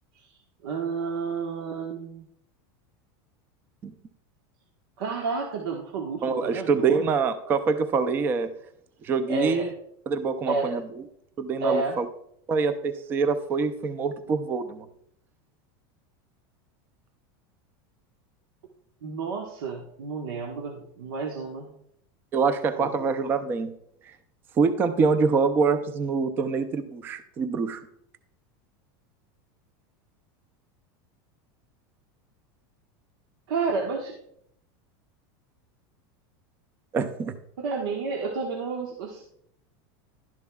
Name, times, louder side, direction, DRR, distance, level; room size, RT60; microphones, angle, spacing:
voice 1, 0.6-2.3 5.0-7.0 9.3-9.7 10.5-10.7 11.6-12.0 19.0-21.7 22.8-23.1 33.5-34.2 37.6-39.2, right 4 dB, 85° right, 0 dB, 1.3 m, -30 dB
voice 2, 6.2-8.5 9.0-9.7 10.1-11.0 11.4-12.1 12.5-14.9 22.3-23.7 24.6-27.8 36.9-37.4, right 5 dB, 15° right, 10 dB, 0.4 m, -25 dB
11.5 x 10.5 x 2.3 m, 0.71 s
supercardioid pair, 175°, 12 cm